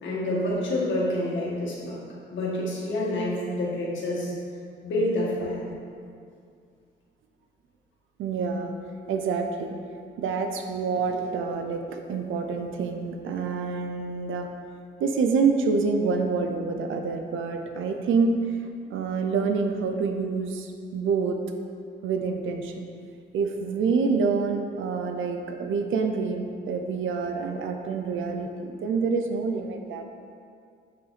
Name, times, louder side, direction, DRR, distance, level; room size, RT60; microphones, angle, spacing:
voice 1, 0.0-2.0 2.3-4.3 4.8-5.6, left 1 dB, 70° left, -4 dB, 1.9 m, -28 dB
voice 2, 8.2-8.7 9.1-9.8 10.2-14.5 15.0-18.4 18.9-21.4 22.0-22.9 23.3-30.0, right 4 dB, 90° right, 5 dB, 0.6 m, -27 dB
7.6 x 5.7 x 4.2 m, 2.3 s
cardioid pair, 145°, 20 cm